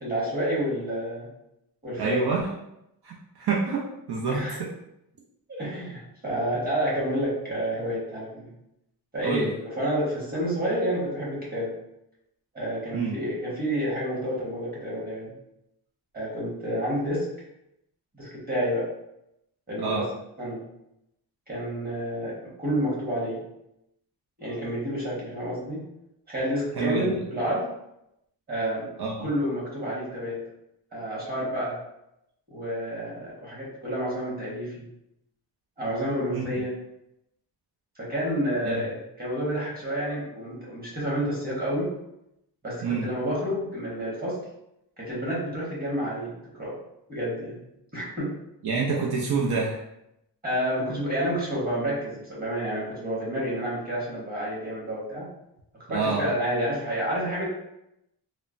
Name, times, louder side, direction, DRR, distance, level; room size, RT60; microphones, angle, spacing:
voice 1, 0.0-1.3 1.8-2.3 4.3-4.6 5.5-8.5 9.1-11.7 12.5-15.3 16.1-17.3 18.1-18.9 19.7-20.1 20.4-20.7 21.5-23.4 24.4-25.8 26.3-27.7 28.5-28.9 29.2-30.4 30.9-31.8 32.5-34.9 35.8-36.8 38.0-41.9 42.6-44.4 45.0-46.8 47.1-47.6 47.9-48.3 50.4-55.3 55.9-57.5, equal, 25° right, -6 dB, 1.3 m, -29 dB
voice 2, 2.0-2.5 3.0-4.4 9.2-9.5 12.9-13.2 19.8-20.1 26.8-27.1 29.0-29.3 36.3-36.5 38.6-38.8 42.8-43.2 48.6-49.8 55.9-56.3, right 4 dB, 70° right, -3 dB, 0.6 m, -27 dB
3.1 x 2.0 x 2.5 m, 0.83 s
wide cardioid pair, 80°, 40 cm